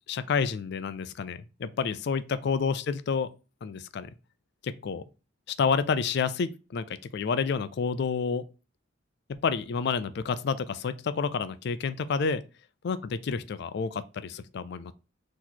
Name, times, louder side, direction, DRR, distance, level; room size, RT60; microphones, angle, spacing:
voice 1, 0.1-3.3 3.6-4.1 4.6-5.0 5.6-8.5 9.3-12.4 12.8-14.9, left 5 dB, 55° left, 0.3 m, -29 dB
4.0 x 3.0 x 4.3 m
head